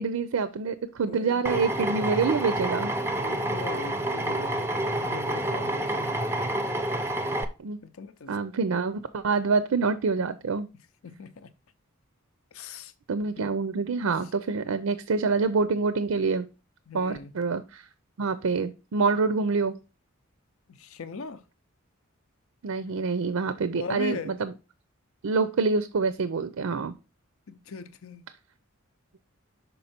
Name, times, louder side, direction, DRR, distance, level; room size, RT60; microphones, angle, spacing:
voice 1, 0.0-2.9 7.6-7.8 8.3-10.7 13.1-16.4 16.9-17.9 18.2-19.8 22.6-24.5 25.2-26.9, right 4 dB, 75° right, 0.5 m, -26 dB
voice 2, 1.0-1.6 3.1-4.6 5.0-6.4 7.8-8.4 11.0-11.5 12.5-12.9 13.4-13.5 16.9-17.3 20.7-21.4 23.7-24.4 27.5-28.2, left 4 dB, 75° left, 0.6 m, -40 dB
Drill, 1.4-7.4, right 1 dB, 10° right, 0.5 m, -28 dB
5.5 x 5.4 x 4.3 m
head